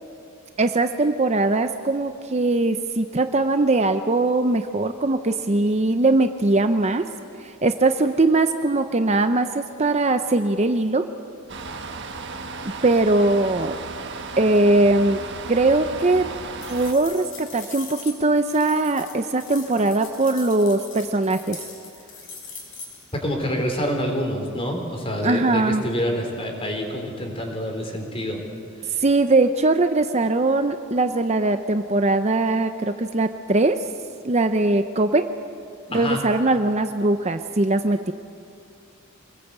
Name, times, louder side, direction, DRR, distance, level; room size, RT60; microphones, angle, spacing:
voice 1, 0.6-7.1 7.4-11.1 12.6-13.7 14.4-15.2 15.5-16.3 16.7-21.6 25.2-25.8 29.0-33.8 34.2-35.3 35.9-38.1, right 2 dB, 30° right, 8 dB, 0.6 m, -21 dB
sound 1, 11.5-16.9, right 4 dB, 55° right, 1.5 m, -35 dB
sound 2, 16.6-23.2, left 5 dB, 65° left, 5.9 m, -41 dB
voice 2, 23.1-28.4 28.8-29.0 35.9-36.2, equal, 25° left, 2 dB, 4.0 m, -27 dB
26.5 x 20.0 x 8.1 m, 2.4 s
head